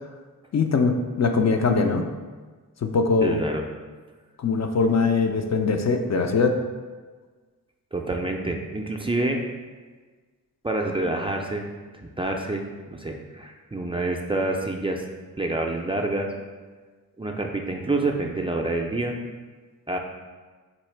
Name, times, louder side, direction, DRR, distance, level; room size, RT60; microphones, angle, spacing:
voice 1, 0.5-2.0 2.8-3.4 4.4-6.6, left 4 dB, 50° left, 5 dB, 0.5 m, -22 dB
voice 2, 3.2-3.6 7.9-9.4 10.6-11.7 11.9-15.0 15.4-16.3 17.2-19.1 19.9-20.0, right 2 dB, 15° right, 1 dB, 0.4 m, -27 dB
4.1 x 2.8 x 4.4 m, 1.4 s
wide cardioid pair, 80°, 34 cm